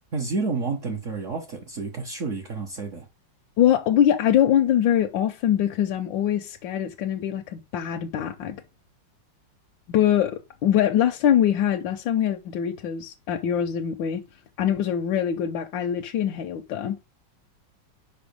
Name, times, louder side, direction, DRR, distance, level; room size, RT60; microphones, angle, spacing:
voice 1, 0.1-3.1, right 4 dB, 50° right, 1.3 m, -30 dB
voice 2, 3.6-8.6 9.9-14.2 14.6-17.0, left 10 dB, 85° left, 1.4 m, -23 dB
5.5 x 5.1 x 5.1 m
omnidirectional pair, 2.0 m